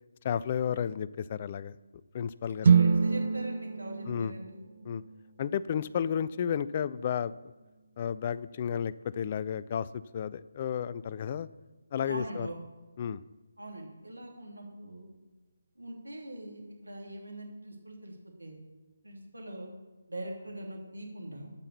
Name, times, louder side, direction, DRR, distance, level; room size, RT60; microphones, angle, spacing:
voice 1, 0.2-1.7 2.1-2.7 4.1-4.3 4.9-5.0 5.4-7.3 8.0-11.5 11.9-12.5 13.0-13.2, left 8 dB, 30° left, 17 dB, 0.3 m, -32 dB
sound 1, 2.6-6.7, right 6 dB, 45° right, 0.4 m, -28 dB
voice 2, 2.6-4.6 12.0-12.5 13.6-15.1 15.7-18.6 19.0-19.7 20.1-21.5, right 1 dB, 80° right, 1 dB, 2.9 m, -42 dB
12.0 x 5.7 x 6.7 m, 1.2 s
figure-of-eight pair, 150°, 0 cm